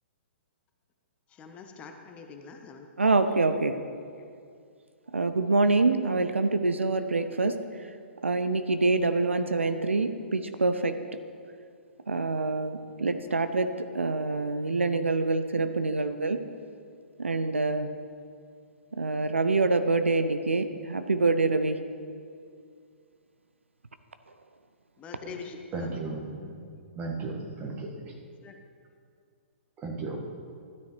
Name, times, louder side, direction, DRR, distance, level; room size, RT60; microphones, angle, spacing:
voice 1, 1.3-3.1 25.0-25.9 28.4-28.5, left 5 dB, 20° left, 4 dB, 0.7 m, -45 dB
voice 2, 3.0-3.7 5.1-7.9 8.2-10.9 12.1-13.7 13.9-16.4 17.2-17.9 18.9-21.8, right 3 dB, 75° right, 9 dB, 0.5 m, -26 dB
voice 3, 25.7-26.5 26.9-28.1 29.8-30.2, right 3 dB, 20° right, 0 dB, 1.4 m, -35 dB
13.0 x 9.2 x 3.2 m, 2.3 s
figure-of-eight pair, 120°, 7 cm